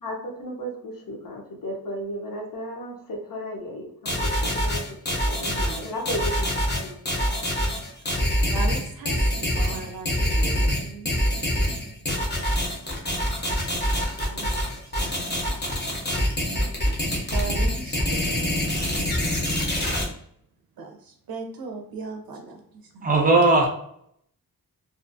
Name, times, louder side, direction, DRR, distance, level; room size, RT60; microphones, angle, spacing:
voice 1, 0.0-4.8 5.1-5.5 5.8-7.3, equal, 65° left, 0 dB, 0.7 m, -35 dB
sound 1, 4.1-20.0, equal, 30° left, 0.7 m, -25 dB
voice 2, 5.4-5.9 8.5-11.2 14.3-14.5 14.8-15.1 17.3-18.6 20.8-23.2, right 4 dB, 70° right, 2 dB, 0.5 m, -37 dB
voice 3, 23.0-23.7, right 2 dB, 25° right, 1 dB, 0.5 m, -17 dB
2.5 x 2.4 x 2.5 m, 0.71 s
wide cardioid pair, 170°, 37 cm